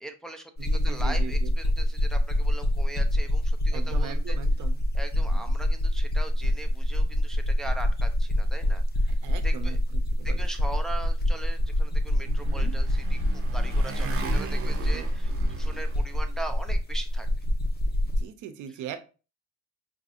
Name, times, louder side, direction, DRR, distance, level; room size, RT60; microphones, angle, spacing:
voice 1, 0.0-4.4 4.9-9.2 9.4-9.8 10.2-17.3, right 2 dB, ahead, 4 dB, 0.5 m, -40 dB
sound 1, 0.6-18.2, equal, 35° left, 1.0 m, -25 dB
voice 2, 0.6-1.5 3.7-4.8 5.2-5.5 9.1-10.5 12.3-12.8 14.2-15.1 18.0-19.0, right 9 dB, 85° right, 9 dB, 0.6 m, -41 dB
Motorcycle, 11.7-16.7, right 4 dB, 45° right, 0.9 m, -36 dB
4.9 x 2.6 x 2.4 m, 0.33 s
cardioid pair, 90°, 30 cm